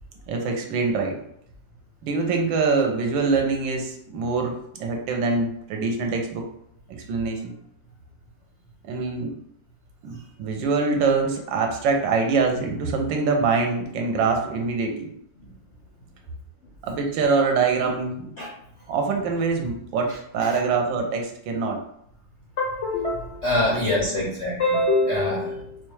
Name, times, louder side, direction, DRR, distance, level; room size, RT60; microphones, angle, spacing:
voice 1, 0.3-1.2 2.0-6.5 6.9-7.5 8.8-9.3 10.0-15.1 16.8-18.3 18.9-21.8 23.7-23.9 24.2-24.3, right 4 dB, 75° right, 2 dB, 1.3 m, -24 dB
voice 2, 22.6-25.8, left 2 dB, 65° left, -5 dB, 0.7 m, -24 dB
4.4 x 2.3 x 3.1 m, 0.72 s
omnidirectional pair, 2.1 m